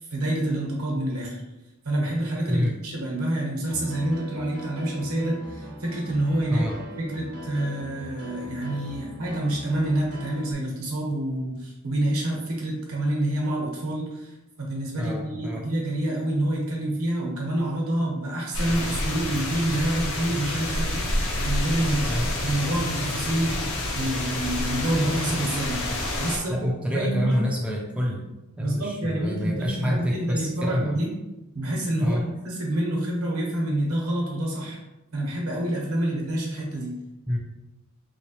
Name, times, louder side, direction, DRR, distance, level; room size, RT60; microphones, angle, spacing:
voice 1, 0.1-1.4 1.8-6.7 7.0-25.8 26.2-26.6 26.9-27.4 28.6-31.1 31.5-34.8 35.1-36.9, right 1 dB, 80° right, -2 dB, 1.0 m, -27 dB
Piano, 3.7-10.5, equal, 50° right, 0.6 m, -40 dB
voice 2, 15.0-15.6 22.0-22.3 26.5-31.0 32.0-32.3 37.3-37.4, equal, 5° right, -2 dB, 0.3 m, -27 dB
sound 1, 18.5-26.4, left 1 dB, 60° left, 0.7 m, -28 dB
3.1 x 3.1 x 2.9 m, 1.0 s
head